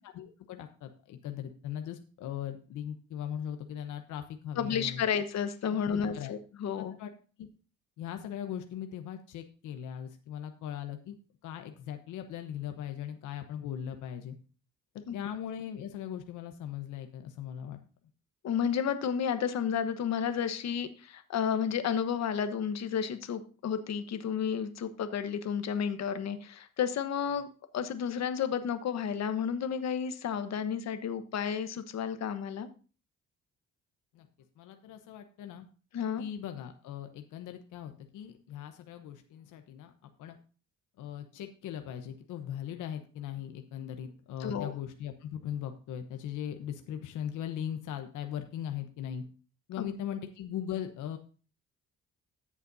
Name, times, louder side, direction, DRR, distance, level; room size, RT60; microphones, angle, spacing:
voice 1, 0.0-5.0 5.9-6.3 6.8-7.1 7.4-7.5 8.0-11.2 11.4-14.4 14.9-17.8 34.1-34.3 34.6-35.6 36.2-39.9 40.2-40.4 41.0-49.3 49.7-51.2, left 9 dB, 85° left, 7 dB, 0.9 m, -39 dB
voice 2, 4.6-6.9 15.1-15.2 18.4-27.5 27.7-32.7 35.9-36.2 44.4-44.7 49.8-49.9, left 7 dB, 60° left, 9 dB, 1.1 m, -32 dB
13.5 x 7.4 x 2.7 m, 0.37 s
cardioid pair, 90°, 30 cm